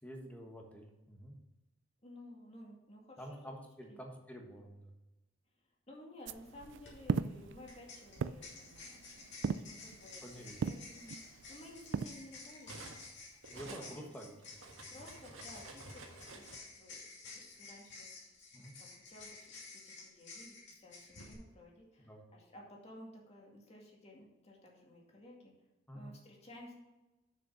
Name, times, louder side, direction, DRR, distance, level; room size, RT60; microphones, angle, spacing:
voice 1, 0.0-1.4 3.2-4.9 10.2-10.6 13.5-15.1 18.5-18.7 22.0-22.2 25.9-26.1, equal, 10° left, 1 dB, 1.4 m, -49 dB
voice 2, 2.0-3.4 3.8-4.0 5.9-12.8 13.6-14.2 14.9-17.0 17.2-18.3 18.8-25.5 25.9-26.7, left 1 dB, 35° left, -2 dB, 2.2 m, -55 dB
sound 1, 6.3-12.1, right 5 dB, 60° right, 0.3 m, -40 dB
sound 2, 6.8-6.9 7.7-21.3, left 3 dB, 60° left, 2.7 m, -52 dB
Cutlery silverware, 7.0-8.3 9.3-9.5 9.9-13.1 13.4-16.6, right 3 dB, 90° right, 1.6 m, -53 dB
6.9 x 6.7 x 5.6 m, 1.0 s
head